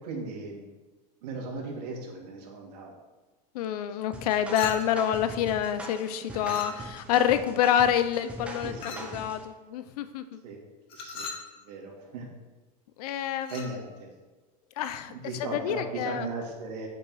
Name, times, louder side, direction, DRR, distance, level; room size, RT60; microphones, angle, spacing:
voice 1, 0.0-0.6 1.2-3.0 6.3-6.6 8.6-9.1 10.4-10.6 10.9-11.3 11.6-12.3 13.5-14.1 15.1-16.9, right 3 dB, 90° right, -1 dB, 2.5 m, -37 dB
voice 2, 3.5-10.4 13.0-13.5 14.8-16.3, left 10 dB, 70° left, 11 dB, 0.7 m, -27 dB
sound 1, 4.1-9.4, right 1 dB, 5° right, 0.7 m, -41 dB
Chink clink, 4.5-5.1 6.4-7.1 8.8-9.2 10.9-11.5 13.4-13.8, left 4 dB, 30° left, 1.1 m, -39 dB
8.3 x 6.6 x 4.8 m, 1.2 s
supercardioid pair, 175°, 20 cm